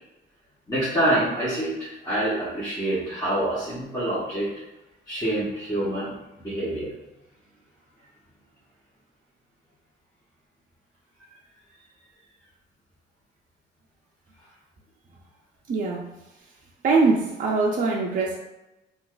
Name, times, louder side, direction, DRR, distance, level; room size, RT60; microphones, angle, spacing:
voice 1, 0.7-4.5 5.1-6.9, right 1 dB, 20° left, -11 dB, 1.2 m, -26 dB
voice 2, 15.7-16.1 16.8-18.4, right 3 dB, 45° right, -2 dB, 0.5 m, -22 dB
3.9 x 2.4 x 2.4 m, 0.98 s
cardioid pair, 90°, 20 cm